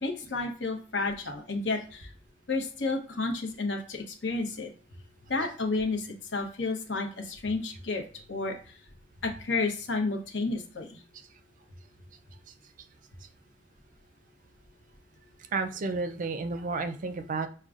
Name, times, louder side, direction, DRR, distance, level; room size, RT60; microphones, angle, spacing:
voice 1, 0.0-2.1 2.5-4.7 5.3-6.1 6.3-8.0 8.3-8.5 9.2-11.0, left 3 dB, 75° left, 2 dB, 0.9 m, -31 dB
voice 2, 15.4-17.5, right 3 dB, 45° right, 8 dB, 0.4 m, -32 dB
6.3 x 2.2 x 2.4 m, 0.41 s
head